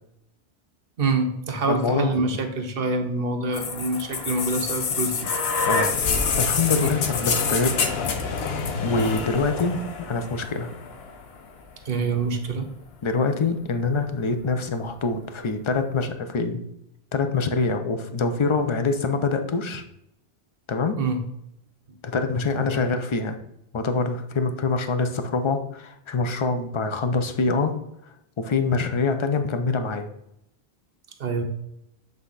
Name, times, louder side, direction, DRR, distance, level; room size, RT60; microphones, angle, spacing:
voice 1, 1.0-5.2 11.8-12.7 21.0-21.2 22.7-22.8 31.2-31.4, right 3 dB, 60° right, 4 dB, 1.1 m, -26 dB
voice 2, 1.7-2.2 5.7-5.9 6.4-7.7 8.8-10.7 13.0-16.6 17.1-19.8 20.7-21.0 22.0-23.4 23.7-27.7 28.4-30.1, left 4 dB, 35° left, 7 dB, 0.6 m, -25 dB
sound 1, 3.5-11.4 12.5-12.6, left 5 dB, 75° left, 1.0 m, -26 dB
7.8 x 3.6 x 4.0 m, 0.80 s
omnidirectional pair, 1.1 m